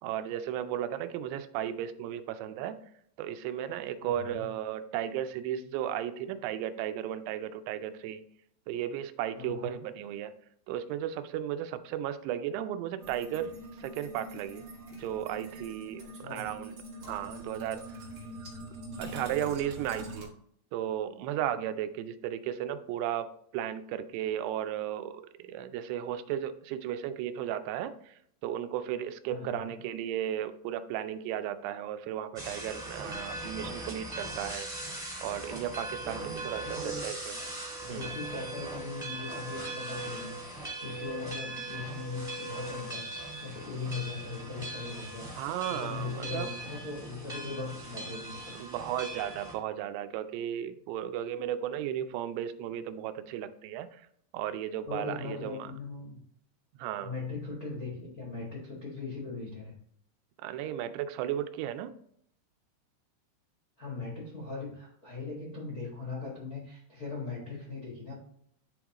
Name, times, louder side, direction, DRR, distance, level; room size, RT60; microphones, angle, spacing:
voice 1, 0.0-2.8 3.2-8.2 8.7-10.3 10.7-13.5 13.8-14.7 15.0-16.0 16.3-16.7 17.1-18.0 19.0-20.3 20.7-23.3 23.5-34.7 35.2-37.4 37.9-38.1 45.4-46.5 48.6-54.1 54.3-55.7 56.8-57.1 60.4-61.9, right 10 dB, 85° right, 10 dB, 2.6 m, -35 dB
voice 2, 4.0-4.4 9.4-9.8 16.2-16.4 29.3-29.7 36.0-37.0 37.8-43.0 43.4-45.3 45.7-48.5 54.9-56.2 57.0-59.7 63.8-68.1, left 4 dB, 75° left, -5 dB, 0.8 m, -39 dB
sound 1, 13.0-20.3, right 1 dB, 65° right, 1.3 m, -44 dB
sound 2, 32.3-49.5, right 2 dB, 5° right, 0.7 m, -40 dB
10.5 x 3.6 x 3.0 m, 0.66 s
omnidirectional pair, 4.7 m